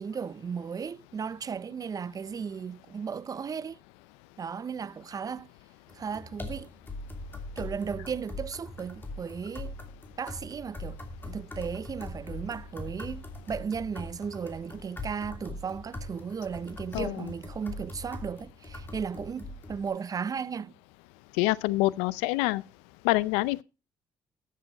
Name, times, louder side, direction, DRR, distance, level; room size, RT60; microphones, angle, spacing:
voice 1, 0.0-3.8 4.4-5.5 5.9-6.7 7.6-9.7 10.2-11.0 11.2-20.7, right 6 dB, 35° right, 0.5 m, -35 dB
sound 1, 5.9-19.9, left 1 dB, 20° left, 2.7 m, -41 dB
voice 2, 16.9-17.3 21.4-22.6 23.0-23.6, left 19 dB, 85° left, 0.5 m, -26 dB
13.0 x 7.5 x 4.0 m
supercardioid pair, 65°, 10 cm